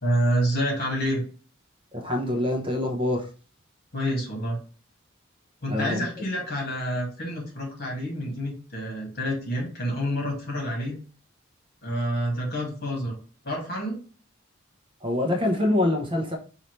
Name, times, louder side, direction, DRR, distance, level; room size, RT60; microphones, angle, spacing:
voice 1, 0.0-1.2 3.9-4.6 5.6-11.0 11.8-13.1 13.4-14.0, equal, 55° left, 0 dB, 2.1 m, -28 dB
voice 2, 1.9-3.3 5.7-6.1 15.0-16.4, left 1 dB, 25° right, 3 dB, 0.9 m, -25 dB
5.5 x 2.8 x 3.2 m, 0.37 s
head